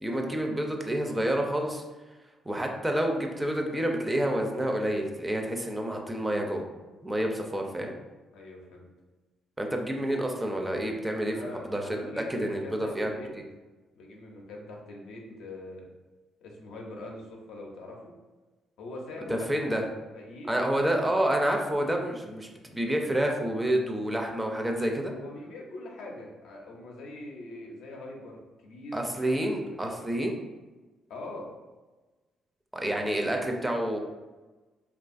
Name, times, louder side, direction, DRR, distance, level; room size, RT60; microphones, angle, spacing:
voice 1, 0.0-1.8 2.5-6.6 7.0-7.9 9.6-11.4 11.7-12.0 12.3-13.4 19.3-19.8 20.5-25.1 28.9-30.3 32.7-34.0, right 1 dB, 10° right, 2 dB, 0.4 m, -28 dB
voice 2, 8.3-8.9 11.3-13.3 14.0-15.9 16.4-18.1 18.8-20.5 25.1-29.9 31.1-31.5, left 1 dB, 85° left, -1 dB, 0.5 m, -43 dB
2.6 x 2.3 x 2.5 m, 1.2 s
cardioid pair, 90°, 0 cm